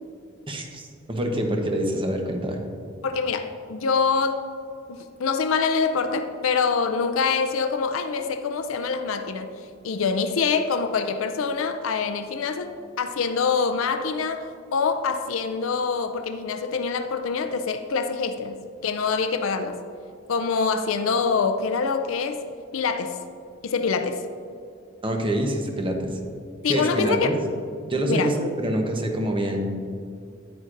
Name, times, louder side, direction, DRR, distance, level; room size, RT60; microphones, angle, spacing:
voice 1, 0.5-2.6 25.0-26.2 26.7-27.3 27.9-29.9, right 1 dB, 25° right, 3 dB, 0.9 m, -26 dB
voice 2, 3.0-4.4 4.9-9.5 9.8-19.8 20.3-22.4 22.7-23.2 23.6-24.2 26.6-27.3 28.1-28.3, left 5 dB, 90° left, 8 dB, 0.5 m, -25 dB
9.7 x 9.1 x 2.5 m, 2.4 s
head